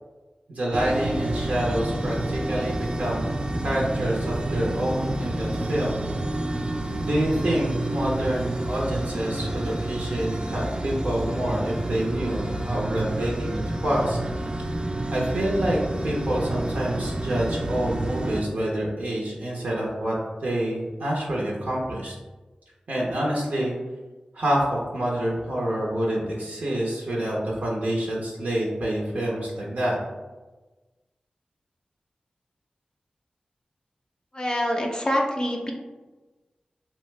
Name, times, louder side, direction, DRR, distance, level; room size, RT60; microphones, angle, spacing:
voice 1, 0.5-3.3 3.6-6.0 7.0-14.2 15.1-15.8 16.0-20.1 20.4-22.1 22.9-23.7 24.3-30.0, right 1 dB, 80° right, -4 dB, 0.6 m, -27 dB
sound 1, 0.7-18.4, right 1 dB, 35° right, 0.3 m, -29 dB
voice 2, 34.3-35.7, equal, 30° left, 1 dB, 0.5 m, -25 dB
2.7 x 2.1 x 3.2 m, 1.2 s
cardioid pair, 50°, 3 cm